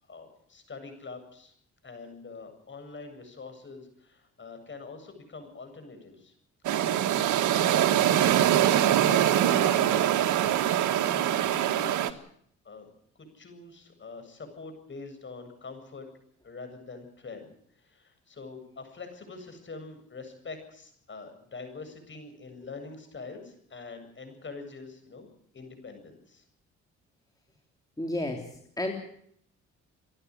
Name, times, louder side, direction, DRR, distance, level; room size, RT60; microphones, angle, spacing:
voice 1, 0.1-1.5 1.8-6.3 6.7-7.0 7.3-10.2 11.4-12.2 12.6-12.9 13.3-16.1 16.4-25.3 25.5-26.4, left 4 dB, 40° left, 7 dB, 7.9 m, -45 dB
sound 1, 6.6-12.1, right 11 dB, 75° right, 1.7 m, -23 dB
voice 2, 28.0-28.4 28.8-28.9, left 1 dB, 10° left, 2 dB, 3.6 m, -30 dB
28.5 x 11.5 x 9.8 m, 0.66 s
cardioid pair, 90°, 30 cm